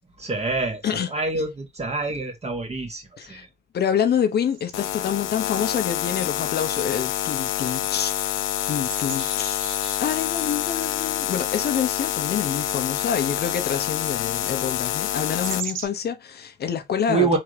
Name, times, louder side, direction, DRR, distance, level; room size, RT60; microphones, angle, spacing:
voice 1, 0.2-3.5 17.1-17.4, right 3 dB, 30° right, 1.7 m, -26 dB
voice 2, 3.7-8.1 8.7-9.6 10.0-17.4, left 8 dB, 55° left, 0.8 m, -27 dB
sound 1, 4.3-15.9, right 7 dB, 80° right, 1.0 m, -43 dB
sound 2, 4.7-15.6, left 12 dB, 80° left, 0.6 m, -27 dB
3.9 x 3.6 x 3.3 m
cardioid pair, 90°, 20 cm